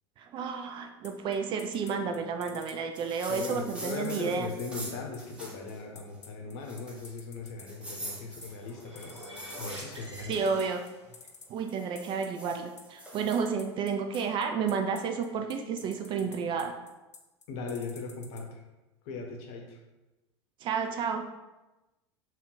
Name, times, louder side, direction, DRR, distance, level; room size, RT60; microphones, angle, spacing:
voice 1, 0.2-4.5 10.3-10.8 11.5-16.7 20.6-21.3, right 6 dB, 35° right, 5 dB, 0.4 m, -31 dB
sound 1, 1.0-18.4, left 5 dB, 85° left, 0.4 m, -50 dB
sound 2, 2.9-5.8 6.1-6.2 6.6-7.2 7.7-10.9 11.5-13.4 14.1-14.2, right 1 dB, 5° right, 0.9 m, -44 dB
voice 2, 3.3-9.2 9.6-10.3 17.5-18.6 19.0-19.8, left 4 dB, 50° left, 2 dB, 0.8 m, -39 dB
sound 3, 8.2-11.3, right 1 dB, 85° right, 0.9 m, -46 dB
3.6 x 2.3 x 3.9 m, 1.0 s
figure-of-eight pair, 85°, 15 cm